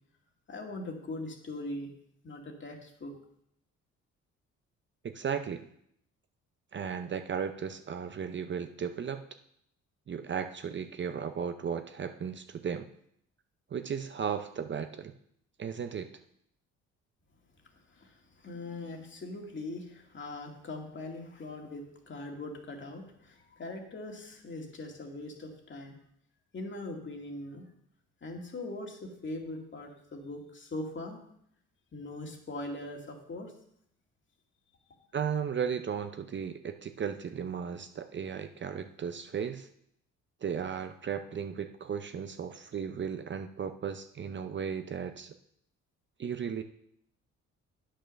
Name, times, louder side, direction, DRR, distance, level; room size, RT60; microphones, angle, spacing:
voice 1, 0.5-1.9 2.2-3.1 17.9-26.0 26.5-27.6 28.2-31.2 31.9-33.5, left 2 dB, 40° left, 2 dB, 2.0 m, -41 dB
voice 2, 5.0-5.6 6.7-9.2 10.1-12.9 13.7-15.1 15.6-16.1 35.1-39.7 40.4-45.3 46.2-46.6, right 7 dB, 40° right, 8 dB, 0.6 m, -35 dB
8.7 x 5.7 x 6.4 m, 0.71 s
cardioid pair, 90°, 30 cm